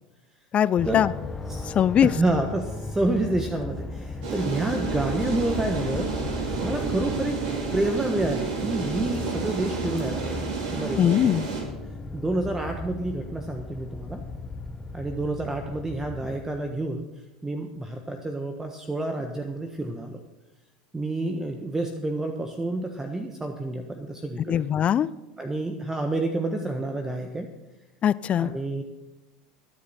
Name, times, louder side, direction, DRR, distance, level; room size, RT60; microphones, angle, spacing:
voice 1, 0.5-1.1 1.7-2.1 11.0-11.5 24.5-25.1 28.0-28.5, left 9 dB, 35° left, 18 dB, 0.5 m, -21 dB
sound 1, 0.8-16.8, left 3 dB, 15° left, 1.1 m, -36 dB
voice 2, 2.0-6.1 6.6-7.4 7.7-11.3 12.1-14.2 14.9-17.1 17.4-20.2 20.9-24.6 25.4-27.5 28.4-28.8, right 2 dB, 10° right, 5 dB, 1.2 m, -29 dB
sound 2, 4.2-11.6, right 6 dB, 60° right, 4.8 m, -31 dB
22.0 x 8.5 x 4.3 m, 1.0 s
figure-of-eight pair, 80°, 4 cm